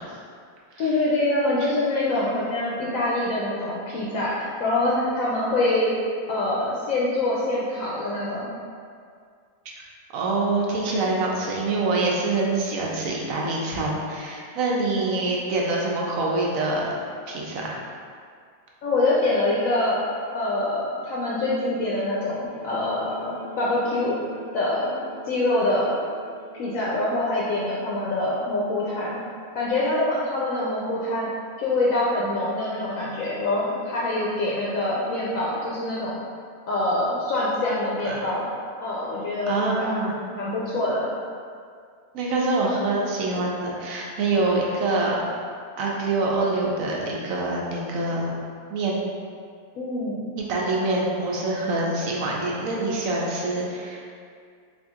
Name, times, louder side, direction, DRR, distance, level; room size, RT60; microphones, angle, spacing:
voice 1, 0.8-5.9 6.3-8.5 18.8-20.0 20.3-24.2 24.5-25.0 25.2-25.9 26.6-29.2 29.5-31.3 31.6-36.2 36.7-38.5 38.8-39.9 40.4-41.1 49.8-50.3, left 2 dB, 70° left, -6 dB, 0.9 m, -25 dB
voice 2, 10.1-16.9 17.3-17.8 38.0-38.2 39.5-40.1 42.1-45.2 45.8-48.3 48.7-49.0 50.5-54.0, right 2 dB, 70° right, -3 dB, 1.0 m, -25 dB
sound 1, 22.4-27.5, right 1 dB, 45° right, 0.7 m, -43 dB
3.6 x 2.6 x 3.6 m, 2.2 s
omnidirectional pair, 1.6 m